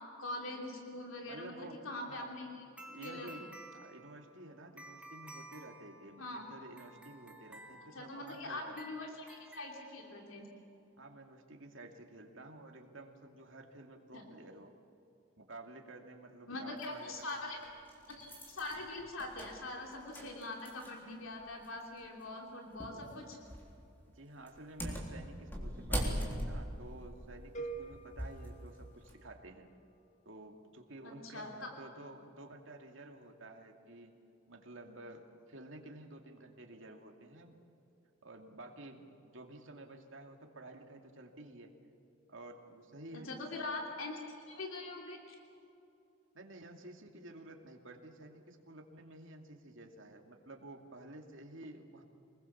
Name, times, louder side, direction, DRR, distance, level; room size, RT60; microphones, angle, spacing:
voice 1, 0.2-2.6 3.0-3.3 6.2-6.5 7.9-10.5 14.1-14.2 16.5-17.6 18.1-23.4 31.0-31.7 43.1-45.3, left 2 dB, 75° left, 1 dB, 3.3 m, -43 dB
voice 2, 1.2-2.3 2.9-8.8 11.0-14.7 15.4-17.3 24.1-29.7 30.3-34.1 34.5-37.5 38.2-41.7 42.3-43.3 46.3-52.0, right 2 dB, 65° right, 2 dB, 2.5 m, -51 dB
sound 1, 2.8-10.5, right 1 dB, 5° right, 2.0 m, -54 dB
sound 2, 16.8-16.9 17.6-21.1 21.4-21.5 22.8-23.1 23.5-23.8 24.5-28.5 28.9-29.1, equal, 10° left, 3.7 m, -40 dB
sound 3, 27.5-29.6, right 4 dB, 35° left, 1.4 m, -46 dB
26.0 x 21.0 x 7.2 m, 2.7 s
head